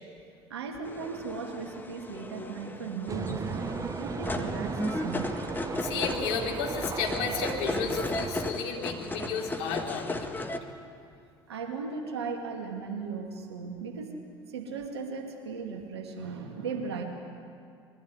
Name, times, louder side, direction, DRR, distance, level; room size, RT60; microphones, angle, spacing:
voice 1, 0.5-5.4 11.5-14.2 14.5-17.0, right 5 dB, 80° right, 2 dB, 2.2 m, -37 dB
sound 1, 0.8-10.6, left 2 dB, 15° left, 1.7 m, -36 dB
sound 2, 3.1-8.5, right 5 dB, 25° right, 0.8 m, -36 dB
voice 2, 5.8-10.5, left 5 dB, 60° left, 0 dB, 3.4 m, -33 dB
22.5 x 13.5 x 9.6 m, 2.4 s
figure-of-eight pair, 65°, 14 cm